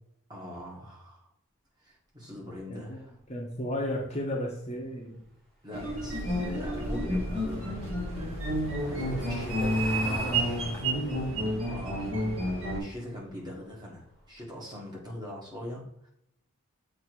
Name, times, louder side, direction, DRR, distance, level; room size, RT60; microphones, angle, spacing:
voice 1, 0.3-1.3 1.8-3.2 5.6-7.8 8.2-8.3 8.8-9.9 10.2-10.6 11.7-12.1 12.7-16.1, left 1 dB, 20° right, -3 dB, 1.5 m, -42 dB
voice 2, 3.3-5.2 7.2-7.7 9.0-9.4 10.0-11.3, equal, 30° left, -1 dB, 0.9 m, -35 dB
sound 1, 5.7-12.8, equal, 55° right, 2.3 m, -30 dB
Car passing by / Engine, 6.9-13.6 13.9-14.2 14.4-14.5, right 1 dB, ahead, 1.3 m, -45 dB
7.1 x 2.9 x 4.6 m, 0.75 s
head